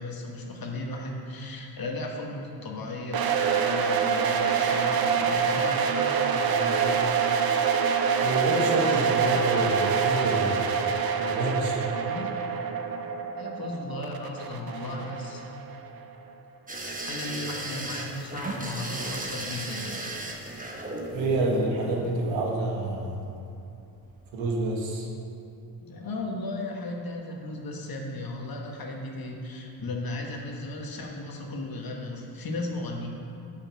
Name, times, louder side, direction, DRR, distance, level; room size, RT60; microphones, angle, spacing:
voice 1, 0.0-5.9 8.7-9.1 12.1-12.3 13.4-15.4 17.0-20.0 25.8-33.1, left 2 dB, 50° left, 0 dB, 1.5 m, -35 dB
sound 1, 3.1-16.0, right 6 dB, 50° right, 0.7 m, -26 dB
voice 2, 6.3-7.0 8.2-10.7 11.2-11.9 21.1-23.2 24.3-25.1, right 2 dB, 85° right, -1 dB, 1.5 m, -28 dB
sound 2, 16.7-22.7 24.0-24.3 24.6-24.7, right 2 dB, 20° right, 1.2 m, -36 dB
6.8 x 5.7 x 6.0 m, 2.8 s
supercardioid pair, 65°, 45 cm